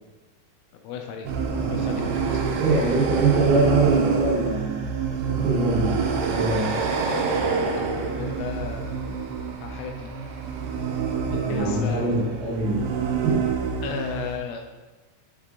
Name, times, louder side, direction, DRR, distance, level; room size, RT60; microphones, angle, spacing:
voice 1, 0.8-2.5 7.8-9.2 9.6-10.2 10.8-11.0 11.3-12.1 13.8-14.6, left 7 dB, 85° left, 3 dB, 2.9 m, -35 dB
sound 1, 1.3-14.4, right 5 dB, 90° right, 3.2 m, -27 dB
voice 2, 2.6-4.8 5.3-5.9 6.3-6.7 11.5-12.8 13.2-13.4, right 3 dB, 70° right, -5 dB, 3.3 m, -23 dB
8.2 x 3.5 x 3.6 m, 1.2 s
omnidirectional pair, 5.8 m